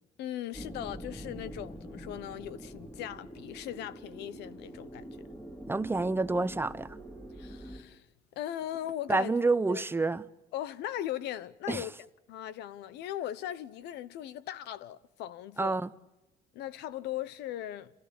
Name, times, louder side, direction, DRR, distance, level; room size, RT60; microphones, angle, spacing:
voice 1, 0.2-5.1 7.4-8.0 8.4-9.3 9.7-9.8 10.5-11.9 12.3-15.8 16.5-17.9, left 12 dB, 85° left, 1.0 m, -38 dB
sound 1, 0.5-7.8, right 1 dB, 10° left, 3.8 m, -45 dB
voice 2, 5.7-7.0 9.1-10.3 11.7-11.9 15.6-15.9, right 3 dB, 15° right, 0.8 m, -28 dB
28.0 x 17.0 x 8.7 m
cardioid pair, 110°, 17 cm